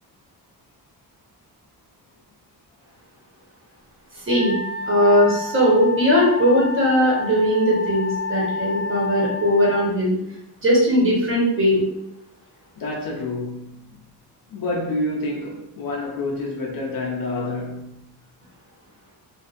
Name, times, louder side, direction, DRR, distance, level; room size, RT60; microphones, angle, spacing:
voice 1, 4.1-4.6 4.9-10.1 10.6-11.8, equal, 30° right, 1.1 m, -19 dB
Wind instrument woodwind instrument, 4.3-9.8, left 4 dB, ahead, 1.0 m, -30 dB
voice 2, 12.8-13.8 14.5-18.0, left 2 dB, 60° left, 0.6 m, -28 dB
2.7 x 2.5 x 2.5 m
wide cardioid pair, 125°, 39 cm